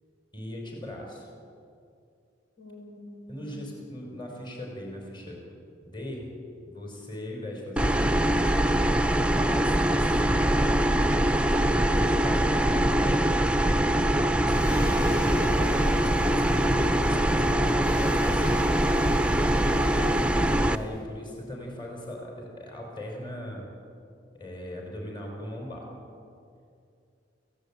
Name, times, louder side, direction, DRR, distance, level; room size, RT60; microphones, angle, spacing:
voice 1, 0.3-1.3 3.3-5.4 5.8-6.3 6.6-8.6 9.3-10.8 11.5-13.3 13.6-18.7 20.6-23.7 24.3-25.9, left 1 dB, 25° left, 0 dB, 5.6 m, -38 dB
voice 2, 2.6-3.7 19.7-20.4, left 2 dB, 70° left, 0 dB, 6.5 m, -43 dB
sound 1, 7.8-20.8, right 1 dB, 5° right, 0.6 m, -23 dB
sound 2, 14.5-21.0, equal, 85° left, 7.2 m, -38 dB
29.0 x 17.0 x 9.1 m, 2.4 s
head